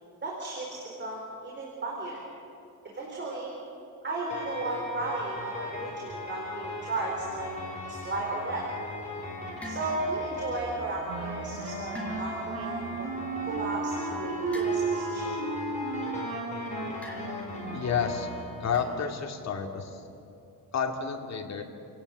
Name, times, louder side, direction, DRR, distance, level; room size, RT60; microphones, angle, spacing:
voice 1, 0.2-2.2 2.9-3.5 4.0-7.5 7.9-8.7 9.6-13.1 13.4-15.4, right 2 dB, 30° right, -2 dB, 4.5 m, -34 dB
sound 1, 4.3-19.0, left 2 dB, 20° left, 5.6 m, -39 dB
sound 2, 9.6-10.3 11.9-12.6 14.5-15.2 17.0-17.6 18.7-19.0, left 2 dB, 5° left, 4.6 m, -43 dB
Wind instrument woodwind instrument, 11.1-18.4, right 3 dB, 85° right, 5.7 m, -34 dB
voice 2, 17.7-18.3 18.6-20.0 20.7-21.6, left 6 dB, 50° left, 2 dB, 2.6 m, -30 dB
29.5 x 18.0 x 8.0 m, 2.6 s
cardioid pair, 150°, 35 cm